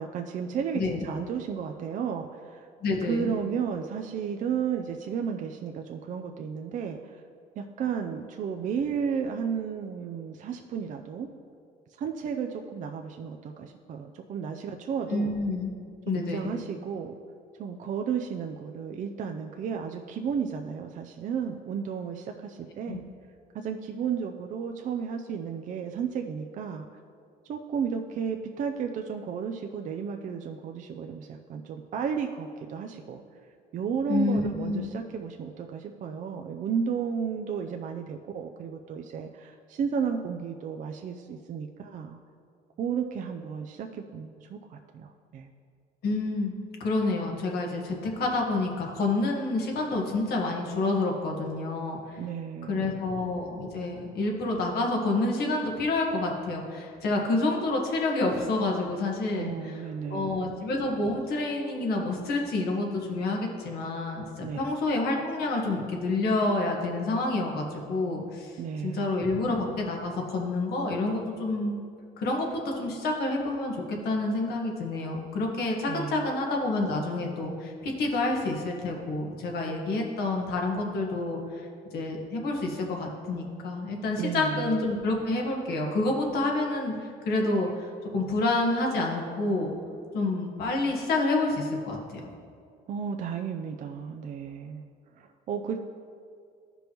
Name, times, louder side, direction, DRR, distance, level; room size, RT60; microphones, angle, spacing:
voice 1, 0.0-2.7 3.0-7.2 7.6-11.3 12.0-15.4 16.1-17.1 17.6-23.0 23.5-26.9 27.5-33.2 33.7-42.2 42.8-45.5 52.2-53.0 59.3-60.6 64.4-64.7 68.6-69.1 75.9-76.3 84.2-84.7 92.9-94.9 95.2-95.8, right 7 dB, 50° right, 4 dB, 0.5 m, -33 dB
voice 2, 2.8-3.3 15.1-15.7 16.0-16.5 22.9-23.0 34.1-34.9 46.0-46.5 46.8-52.2 52.7-59.8 60.1-71.8 72.2-81.7 81.9-89.7 90.1-92.0, left 2 dB, 70° left, 0 dB, 1.5 m, -28 dB
13.0 x 5.3 x 3.0 m, 2.4 s
cardioid pair, 110°, 17 cm